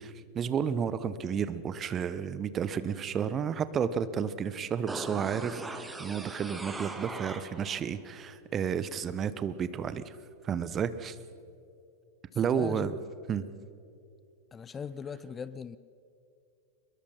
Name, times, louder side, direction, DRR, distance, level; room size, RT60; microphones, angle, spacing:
voice 1, 0.0-10.2 10.4-11.2 12.3-12.9 13.3-13.5, right 7 dB, 25° right, 1.0 m, -32 dB
sound 1, 4.9-7.9 8.2-8.3, right 2 dB, 10° right, 1.7 m, -40 dB
voice 2, 12.4-13.0 14.5-15.8, left 6 dB, 20° left, 0.5 m, -39 dB
22.5 x 22.0 x 5.8 m
figure-of-eight pair, 90°, 0 cm